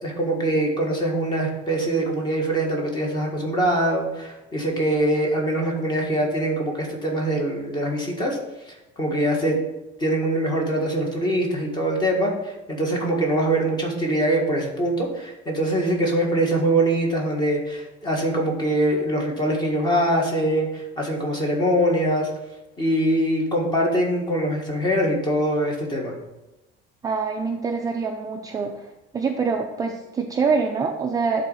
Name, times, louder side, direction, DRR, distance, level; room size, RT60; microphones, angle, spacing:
voice 1, 0.0-8.4 8.7-9.6 10.0-22.3 22.8-26.2, right 1 dB, 20° left, 0 dB, 1.7 m, -23 dB
voice 2, 27.0-28.9 29.1-31.4, right 5 dB, 15° right, 2 dB, 0.5 m, -25 dB
10.5 x 4.1 x 5.5 m, 0.99 s
cardioid pair, 170°, 20 cm